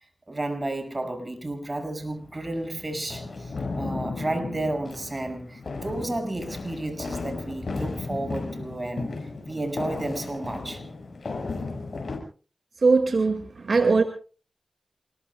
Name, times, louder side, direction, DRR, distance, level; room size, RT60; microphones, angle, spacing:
voice 1, 0.3-10.9, right 2 dB, 40° right, 7 dB, 6.1 m, -32 dB
sound 1, 2.0-12.2, left 3 dB, 70° left, 5.6 m, -35 dB
voice 2, 12.8-14.0, right 4 dB, 75° right, 6 dB, 2.0 m, -20 dB
28.0 x 21.0 x 2.3 m, 0.38 s
cardioid pair, 45°, 0 cm